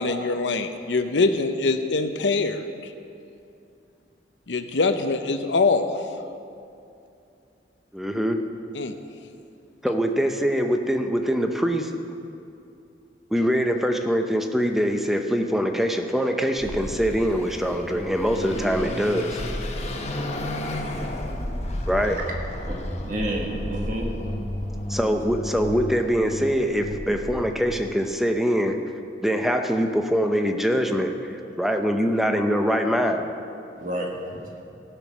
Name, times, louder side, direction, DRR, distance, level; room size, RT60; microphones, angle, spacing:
voice 1, 0.0-2.9 4.5-5.8 8.7-8.9, left 3 dB, 85° left, 8 dB, 0.7 m, -23 dB
voice 2, 7.9-8.4 9.8-11.9 13.3-19.4 21.9-22.2 24.9-28.9 29.2-33.3, equal, ahead, 4 dB, 0.6 m, -23 dB
Car passing by / Accelerating revving vroom, 16.6-27.8, left 1 dB, 40° left, 0.9 m, -32 dB
voice 3, 22.7-24.1 27.1-27.2 33.8-34.6, right 1 dB, 45° right, -1 dB, 1.6 m, -30 dB
15.5 x 6.1 x 6.1 m, 2.6 s
head